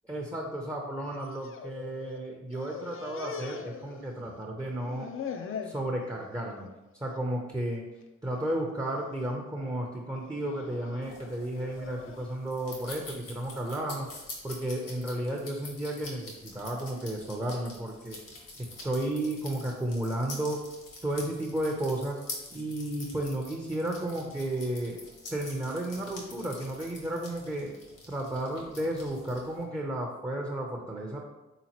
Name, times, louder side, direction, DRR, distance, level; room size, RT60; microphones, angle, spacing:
voice 1, 0.1-5.1 5.6-6.7 6.9-7.8 8.2-14.1 14.4-18.2 18.6-20.6 21.0-22.2 22.5-25.0 25.3-27.7 28.1-31.2, right 1 dB, 10° right, 0 dB, 0.6 m, -33 dB
sound 1, 1.1-2.2 2.5-4.4 4.7-5.8 6.3-6.7 7.0-7.2 8.0-8.4 8.9-9.3 10.1-12.3, left 7 dB, 40° left, 0.4 m, -42 dB
sound 2, 11.0-29.6, left 2 dB, 70° left, 1.1 m, -46 dB
3.6 x 2.9 x 2.8 m, 1.1 s
supercardioid pair, 40°, 33 cm